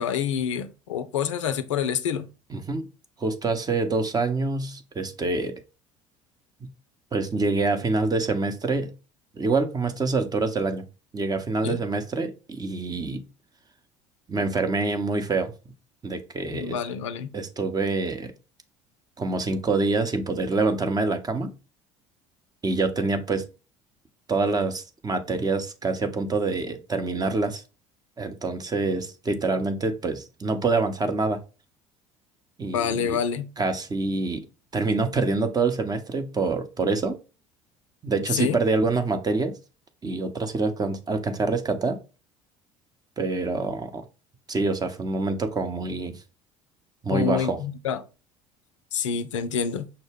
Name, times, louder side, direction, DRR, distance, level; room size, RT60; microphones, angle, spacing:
voice 1, 0.0-2.3 11.6-11.8 16.5-17.3 32.7-33.5 38.3-38.6 47.1-48.0 48.9-49.9, left 7 dB, 85° left, 0.4 m, -27 dB
voice 2, 2.5-2.9 3.2-5.5 6.6-6.7 7.1-8.9 9.4-10.8 11.1-13.2 14.3-15.5 16.0-16.8 17.3-18.3 19.2-21.5 22.6-23.5 24.3-27.6 28.2-31.4 32.6-33.2 33.6-34.4 34.7-37.2 38.0-39.5 40.0-42.0 43.2-44.0 44.5-46.1 47.0-47.6, right 3 dB, 25° right, 0.7 m, -26 dB
5.7 x 2.1 x 3.4 m
hypercardioid pair, 70°, 16 cm